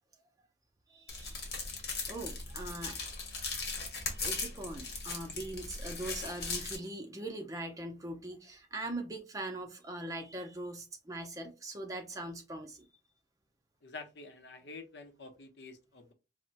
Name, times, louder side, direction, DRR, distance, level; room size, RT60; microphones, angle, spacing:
voice 1, 0.9-1.5 2.1-3.0 4.2-12.9, right 2 dB, 20° right, 0.5 m, -41 dB
sound 1, 1.1-6.8, left 4 dB, 60° left, 1.0 m, -38 dB
voice 2, 13.8-16.1, left 3 dB, 75° left, 0.7 m, -48 dB
4.2 x 2.1 x 2.5 m
head